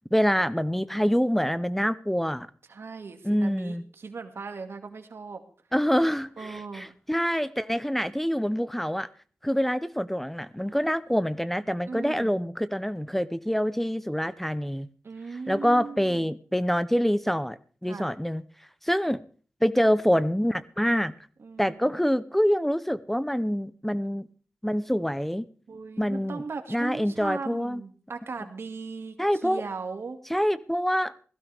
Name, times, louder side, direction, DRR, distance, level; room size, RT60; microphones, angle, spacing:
voice 1, 0.1-2.5 3.2-3.8 5.7-9.1 9.4-14.9 15.5-18.4 18.8-19.2 19.6-21.1 21.6-24.3 24.6-25.5 26.0-26.4 26.7-27.8 29.2-29.6 30.3-31.1, equal, 5° left, 0.7 m, -26 dB
voice 2, 2.7-5.4 6.4-6.9 11.9-12.3 15.0-16.3 17.9-18.1 21.4-21.9 25.7-29.2 29.4-30.2, right 4 dB, 70° right, 2.2 m, -38 dB
17.0 x 15.5 x 3.5 m
cardioid pair, 55°, 4 cm